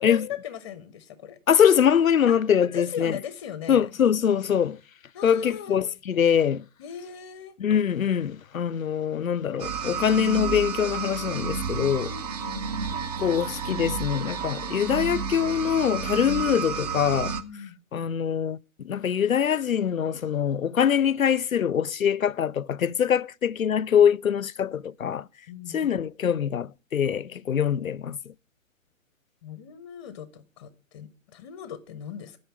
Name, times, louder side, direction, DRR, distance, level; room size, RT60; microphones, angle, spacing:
voice 1, 0.0-1.4 2.3-2.4 2.7-3.9 5.1-5.8 6.8-7.6 12.0-12.7 17.4-17.8 25.5-25.8 29.4-32.4, left 8 dB, 25° left, 0.7 m, -38 dB
voice 2, 1.5-3.2 3.7-4.8 5.2-6.6 7.6-12.1 13.2-17.4 17.9-25.3 25.7-28.3, left 8 dB, 85° left, 0.5 m, -23 dB
sound 1, 9.6-17.4, right 5 dB, 30° right, 0.7 m, -31 dB
11.5 x 5.5 x 7.1 m
figure-of-eight pair, 130°, 40 cm